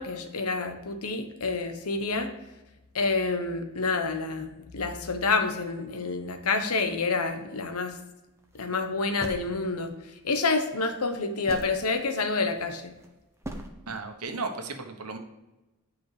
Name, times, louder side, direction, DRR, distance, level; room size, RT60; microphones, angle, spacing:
voice 1, 0.0-2.3 2.9-8.0 8.6-9.9 10.2-12.9, left 3 dB, 85° left, 7 dB, 1.1 m, -28 dB
sound 1, 8.4-8.7 9.2-10.1 11.0-11.1 11.5-11.9 12.7-13.1 13.4-13.7, right 1 dB, 10° right, 1.0 m, -39 dB
voice 2, 13.9-15.2, right 3 dB, 85° right, 6 dB, 1.2 m, -35 dB
9.7 x 5.5 x 4.9 m, 1.0 s
head